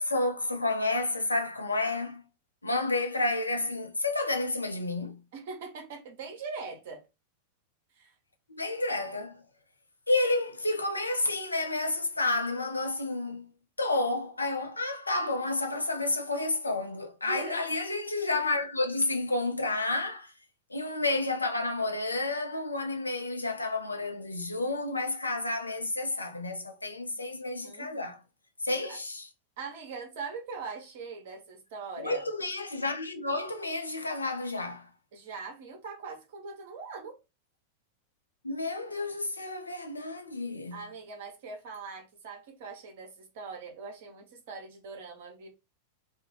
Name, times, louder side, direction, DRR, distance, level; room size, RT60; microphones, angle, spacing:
voice 1, 0.0-2.2 2.6-5.2 8.5-9.4 10.1-13.5 13.8-20.3 20.7-28.2 28.6-29.3 32.0-34.9 38.4-40.8, left 2 dB, 80° left, 0.4 m, -30 dB
voice 2, 5.3-7.0 8.0-8.1 17.3-17.7 27.6-28.2 29.6-32.2 35.1-37.2 40.7-45.5, right 4 dB, 50° right, 0.7 m, -41 dB
2.3 x 2.1 x 3.1 m
figure-of-eight pair, 90°, 0 cm